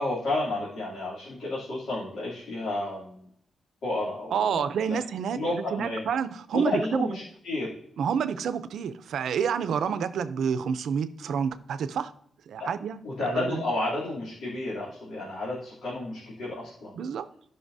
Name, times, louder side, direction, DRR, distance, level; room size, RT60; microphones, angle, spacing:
voice 1, 0.0-3.2 3.8-5.0 5.3-6.0 6.5-7.7 12.6-12.7 13.0-16.9, left 2 dB, 90° left, -7 dB, 2.8 m, -31 dB
voice 2, 4.3-7.1 8.0-12.1 12.5-13.6 17.0-17.3, right 7 dB, 90° right, 12 dB, 0.5 m, -29 dB
16.5 x 5.6 x 2.7 m, 0.70 s
wide cardioid pair, 130°, 0 cm